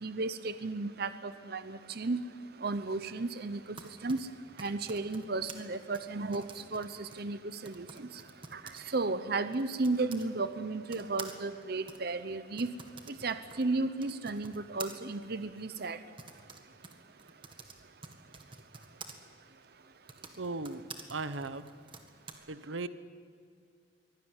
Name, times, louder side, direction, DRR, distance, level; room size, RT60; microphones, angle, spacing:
voice 1, 0.0-2.2 2.6-3.8 4.0-4.2 4.6-8.1 8.5-12.7 13.2-16.0, right 3 dB, 55° right, 11 dB, 0.8 m, -34 dB
Typing, 3.5-10.3 10.9-19.1 19.9-22.3, right 4 dB, 25° right, 1.8 m, -50 dB
voice 2, 20.4-21.6 22.5-22.9, right 3 dB, 80° right, 13 dB, 1.0 m, -37 dB
23.5 x 16.5 x 9.9 m, 2.3 s
head